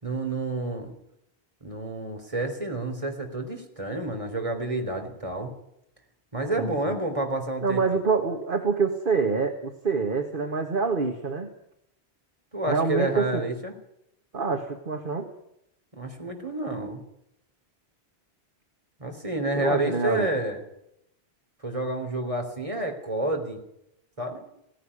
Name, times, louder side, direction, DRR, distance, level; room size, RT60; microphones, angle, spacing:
voice 1, 0.0-0.9 1.6-5.5 6.3-7.8 12.5-13.7 15.9-17.0 19.0-20.6 21.6-23.6 24.2-24.4, right 1 dB, 30° right, 4 dB, 3.8 m, -29 dB
voice 2, 6.6-6.9 7.6-11.5 12.7-13.4 14.3-15.3 19.5-20.3, right 4 dB, 55° right, 4 dB, 1.8 m, -26 dB
17.5 x 16.0 x 9.9 m, 0.79 s
omnidirectional pair, 1.1 m